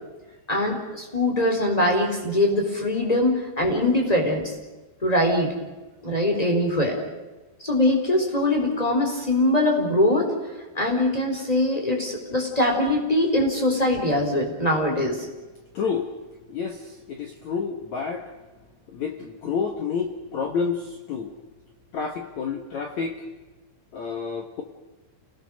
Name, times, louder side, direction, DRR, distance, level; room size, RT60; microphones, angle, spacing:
voice 1, 0.5-4.5 5.0-5.5 6.0-7.0 7.6-10.3 10.7-15.3, left 1 dB, 10° left, 2 dB, 3.8 m, -22 dB
voice 2, 15.7-16.1 16.5-18.3 18.9-21.3 21.9-23.2 23.9-24.6, left 5 dB, 65° left, 4 dB, 1.8 m, -29 dB
28.5 x 19.0 x 6.4 m, 1.2 s
omnidirectional pair, 5.4 m